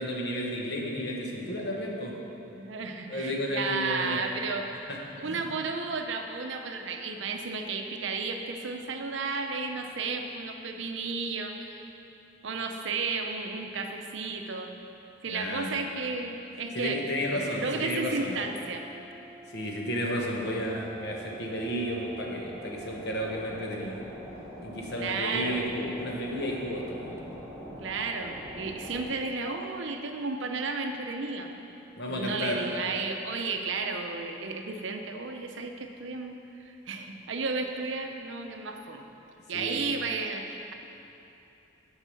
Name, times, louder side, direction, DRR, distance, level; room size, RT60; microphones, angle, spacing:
voice 1, 0.0-2.2 3.1-4.2 4.9-5.0 5.2-5.4 15.3-15.7 16.7-18.4 19.5-24.0 24.6-27.2 32.0-32.6 39.5-39.8, equal, 55° left, -1 dB, 1.2 m, -32 dB
voice 2, 2.5-4.7 5.2-11.7 12.4-14.7 15.2-18.8 24.9-25.6 27.8-31.5 32.1-39.0 39.5-40.7, right 4 dB, 65° right, 4 dB, 0.6 m, -33 dB
sound 1, 16.6-29.0, right 2 dB, 5° right, 1.7 m, -45 dB
8.2 x 4.8 x 7.0 m, 2.9 s
head